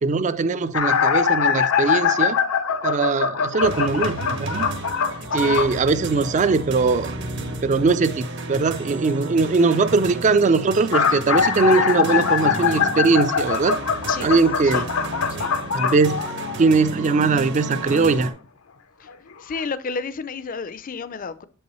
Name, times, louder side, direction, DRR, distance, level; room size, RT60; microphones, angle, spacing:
voice 1, 0.0-2.4 2.8-4.7 5.3-7.1 7.5-13.8 14.2-14.9 15.7-16.3 16.6-18.3, right 4 dB, 35° right, 0.4 m, -20 dB
sound 1, 0.7-5.8 10.6-16.8 17.9-18.0 19.1-19.2 19.5-19.6, left 6 dB, 80° left, 0.7 m, -22 dB
sound 2, 3.6-18.3, right 2 dB, 60° right, 1.0 m, -33 dB
voice 2, 5.2-5.8 14.1-14.8 15.3-15.5 19.0-19.1 19.4-21.4, left 5 dB, 40° left, 0.5 m, -32 dB
7.2 x 5.5 x 3.1 m
head